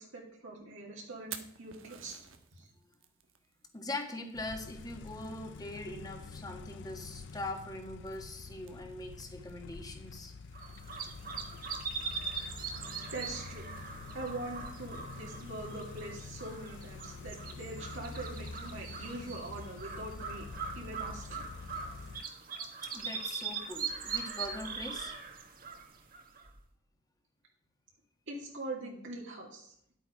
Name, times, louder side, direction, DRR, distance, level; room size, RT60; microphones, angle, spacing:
voice 1, 0.0-2.2 2.5-2.7 13.1-13.7 14.1-20.5 20.7-21.4 28.3-29.7, right 2 dB, 70° right, -2 dB, 2.3 m, -43 dB
Fire, 1.1-12.5, right 9 dB, 90° right, 1.3 m, -55 dB
voice 2, 3.7-10.4 22.8-25.2, left 2 dB, 20° left, 4 dB, 1.8 m, -42 dB
sound 1, 4.3-22.2, left 4 dB, 65° left, 0.5 m, -47 dB
sound 2, 10.5-26.6, right 5 dB, 45° right, 1.6 m, -41 dB
11.0 x 8.5 x 4.8 m, 0.71 s
head